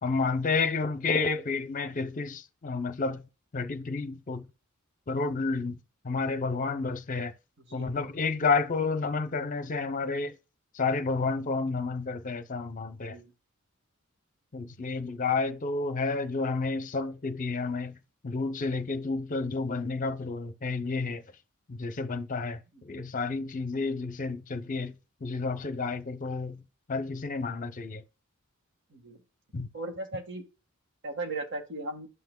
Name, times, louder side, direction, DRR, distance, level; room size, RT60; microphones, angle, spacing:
voice 1, 0.0-3.3 3.5-4.5 5.1-5.8 6.0-7.3 7.7-10.3 10.7-13.2 14.5-18.0 18.2-21.2 21.7-26.6 26.9-28.0 29.5-29.7, left 4 dB, 40° left, 0.6 m, -30 dB
voice 2, 7.7-8.0 13.0-13.3 22.7-23.0 28.9-29.2 29.7-30.4 31.0-32.1, right 2 dB, 60° right, 1.6 m, -37 dB
11.0 x 5.8 x 2.2 m
head